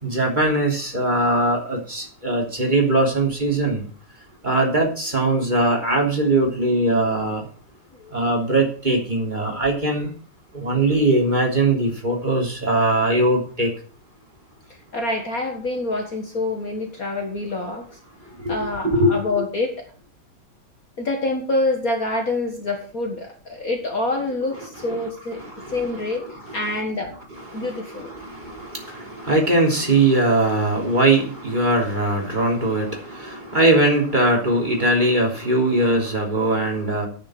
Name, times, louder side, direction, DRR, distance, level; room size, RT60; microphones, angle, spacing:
voice 1, 0.0-3.8 4.4-7.4 8.1-10.1 10.5-13.7 18.4-18.6 18.8-19.2 25.3-25.9 26.4-26.8 27.5-37.1, right 2 dB, 20° right, 0 dB, 3.4 m, -21 dB
voice 2, 14.9-17.9 18.5-19.9 21.0-25.4 25.7-27.2 27.5-28.1, left 2 dB, 45° left, 3 dB, 2.0 m, -26 dB
9.5 x 7.6 x 7.7 m, 0.42 s
omnidirectional pair, 2.2 m